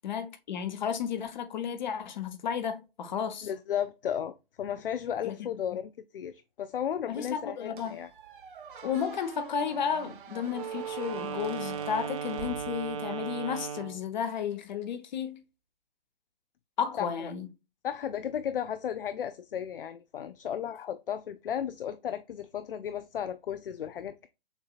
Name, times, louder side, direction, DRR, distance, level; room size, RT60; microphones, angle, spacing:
voice 1, 0.0-3.5 5.2-5.3 7.1-8.0 8.8-15.4 16.8-17.5, left 7 dB, 50° left, 1.0 m, -33 dB
voice 2, 3.4-8.1 17.0-17.3 17.8-24.3, left 9 dB, 65° left, 0.5 m, -34 dB
Squeak, 7.8-13.3, right 5 dB, 60° right, 0.8 m, -47 dB
Wind instrument woodwind instrument, 10.5-14.0, right 8 dB, 35° right, 0.6 m, -36 dB
7.0 x 2.8 x 2.4 m
figure-of-eight pair, 130°, 30 cm